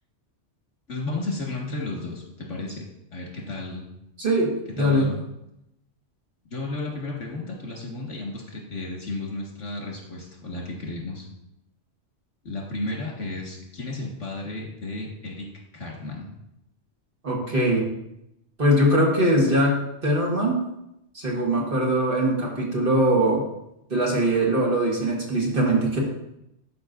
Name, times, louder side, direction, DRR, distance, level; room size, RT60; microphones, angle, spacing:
voice 1, 0.9-2.8 3.1-3.9 4.8-5.2 6.5-11.3 12.4-15.5 15.7-16.4, left 2 dB, 80° left, -2 dB, 2.2 m, -33 dB
voice 2, 4.2-5.1 17.2-17.9 18.6-20.6 21.1-23.4 23.9-26.0, right 1 dB, 50° right, -3 dB, 1.7 m, -22 dB
11.0 x 5.1 x 2.6 m, 0.83 s
omnidirectional pair, 1.2 m